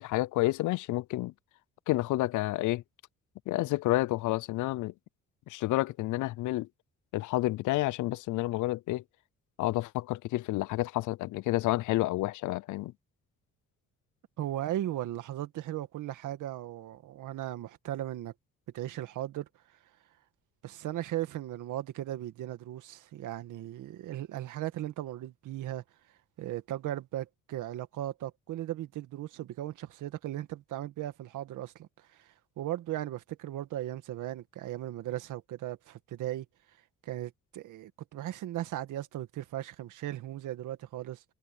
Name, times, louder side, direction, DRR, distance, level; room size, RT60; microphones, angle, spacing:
voice 1, 0.0-1.3 1.9-2.8 3.5-4.9 5.5-6.7 7.1-9.0 9.6-12.9, left 18 dB, 80° left, 0.5 m, -29 dB
voice 2, 14.4-18.3 18.7-19.5 20.6-25.8 26.4-36.5 37.0-41.2, right 13 dB, 85° right, 2.1 m, -37 dB
cardioid pair, 90°, 30 cm